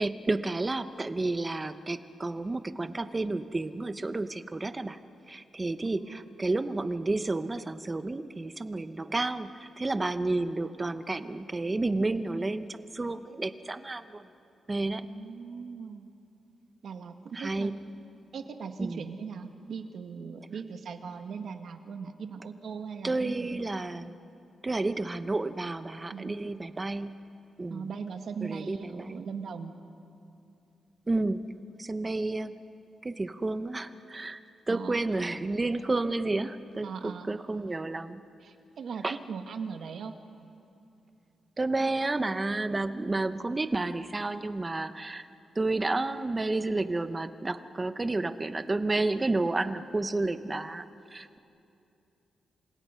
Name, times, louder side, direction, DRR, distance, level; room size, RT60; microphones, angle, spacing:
voice 1, 0.0-5.0 5.3-14.2 14.7-15.0 17.3-17.8 18.8-19.0 23.0-24.1 24.6-27.2 27.6-27.9 28.4-29.2 31.1-31.5 31.8-32.6 33.0-34.4 34.7-38.2 39.0-39.2 41.6-45.3 45.6-50.8 51.1-51.4, right 2 dB, 15° right, 11 dB, 0.8 m, -31 dB
voice 2, 5.8-6.2 15.1-16.1 16.8-17.7 18.3-23.6 26.1-26.5 27.7-29.7 34.7-35.0 36.8-37.3 38.4-40.1, right 6 dB, 55° right, 6 dB, 1.6 m, -39 dB
29.0 x 26.5 x 5.6 m, 2.7 s
wide cardioid pair, 165°, 0 cm